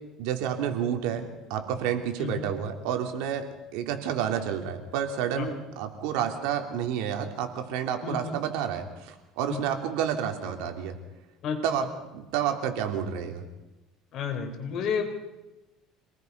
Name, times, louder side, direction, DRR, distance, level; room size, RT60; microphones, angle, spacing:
voice 1, 0.2-3.5 3.7-11.0 11.6-13.4, right 8 dB, 85° right, 5 dB, 2.9 m, -30 dB
voice 2, 2.2-2.5 5.4-5.5 8.0-8.4 9.5-9.6 11.4-11.6 14.1-15.0, left 7 dB, 50° left, 5 dB, 3.8 m, -31 dB
26.5 x 19.5 x 5.4 m, 1.0 s
cardioid pair, 135°, 0 cm